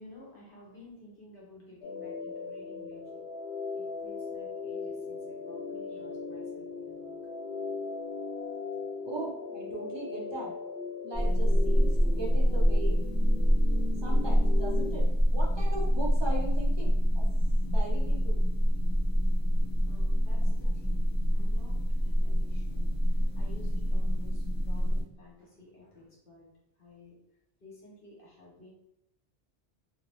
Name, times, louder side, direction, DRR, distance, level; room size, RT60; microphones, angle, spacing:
voice 1, 0.0-3.2 3.7-7.1 19.8-21.0 21.3-26.5 26.8-27.2 27.6-28.7, left 2 dB, 60° left, -4 dB, 1.1 m, -53 dB
sound 1, 1.8-14.9, left 4 dB, 90° left, 0.8 m, -39 dB
voice 2, 9.0-10.5 11.0-13.0 14.0-17.2 17.6-18.4, right 2 dB, 30° right, -2 dB, 0.6 m, -39 dB
sound 2, 11.1-25.0, equal, 5° right, 1.0 m, -26 dB
2.8 x 2.1 x 3.0 m, 0.80 s
omnidirectional pair, 1.1 m